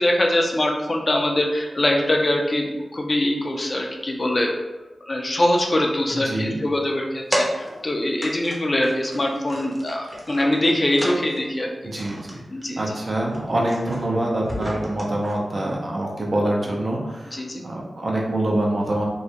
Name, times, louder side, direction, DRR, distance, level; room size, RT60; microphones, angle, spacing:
voice 1, 0.0-4.5 5.1-11.7 12.5-13.0 17.3-17.6, left 1 dB, 40° left, 1 dB, 0.4 m, -23 dB
voice 2, 6.1-6.6 11.8-12.4 12.8-19.1, right 1 dB, 55° right, -2 dB, 0.6 m, -25 dB
sound 1, 7.3-7.9 8.2-8.6 8.8-11.5 11.9-12.3 12.6-12.9 13.2-15.7, equal, 15° right, 0.7 m, -32 dB
2.3 x 2.1 x 2.8 m, 1.1 s
cardioid pair, 50°, 0 cm